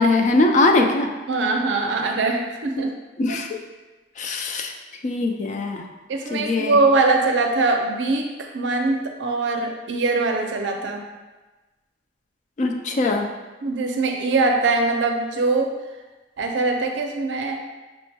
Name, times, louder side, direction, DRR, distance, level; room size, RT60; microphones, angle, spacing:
voice 1, 0.0-1.1 3.2-3.6 4.2-4.7 5.0-5.9 6.3-6.7 12.6-13.3, left 2 dB, 40° left, 4 dB, 0.3 m, -21 dB
voice 2, 1.3-2.9 3.3-3.4 6.1-11.0 13.6-15.7 16.4-17.6, right 3 dB, 75° right, 3 dB, 0.5 m, -22 dB
5.2 x 2.2 x 2.7 m, 1.2 s
head